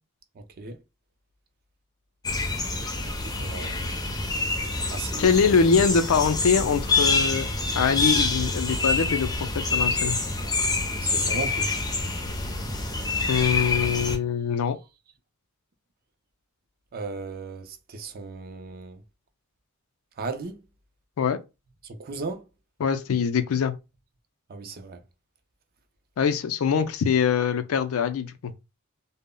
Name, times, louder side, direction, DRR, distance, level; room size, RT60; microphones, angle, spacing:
sound 1, 2.2-14.2, left 3 dB, 20° left, 0.4 m, -26 dB
voice 1, 3.0-3.9 4.9-5.3 11.0-11.7 16.9-19.0 20.2-20.6 21.8-22.4 24.5-25.0, right 3 dB, 45° right, 0.4 m, -36 dB
voice 2, 5.2-7.5 7.8-9.3 9.7-10.2 13.3-14.8 21.2-21.4 22.8-23.7 26.2-28.5, left 6 dB, 75° left, 0.4 m, -23 dB
2.0 x 2.0 x 3.6 m
head